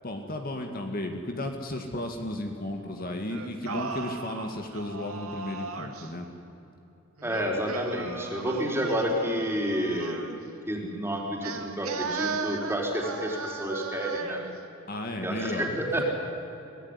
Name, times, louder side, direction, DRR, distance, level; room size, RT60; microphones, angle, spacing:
voice 1, 0.0-6.3 8.5-8.6 14.9-16.0, left 1 dB, 45° left, 4 dB, 2.0 m, -34 dB
Singing, 3.3-6.1 7.2-10.4 11.4-14.5, right 4 dB, 85° right, 2.4 m, -36 dB
voice 2, 7.2-10.2 10.7-14.4 15.2-16.0, equal, 10° right, -1 dB, 4.3 m, -30 dB
25.5 x 18.5 x 9.9 m, 2.9 s
head